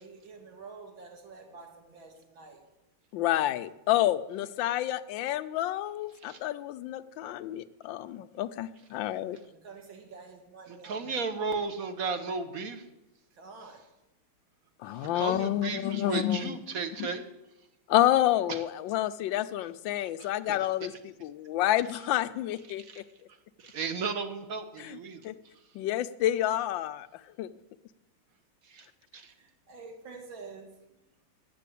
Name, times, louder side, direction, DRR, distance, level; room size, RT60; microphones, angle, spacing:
voice 1, 0.0-2.6 9.5-11.0 13.3-13.8 29.4-31.0, right 4 dB, 65° right, 3 dB, 2.7 m, -48 dB
voice 2, 3.1-9.4 14.8-16.5 17.9-20.9 21.2-23.0 24.8-25.0 25.2-25.3 25.7-27.1 27.4-27.5, left 13 dB, 75° left, 12 dB, 1.2 m, -29 dB
voice 3, 10.7-12.9 14.8-17.2 18.5-18.6 20.2-20.9 22.7-23.0 23.3-25.7 28.6-28.9 29.1-29.3, right 4 dB, 50° right, 8 dB, 1.3 m, -35 dB
9.9 x 7.8 x 8.4 m, 0.97 s
omnidirectional pair, 2.3 m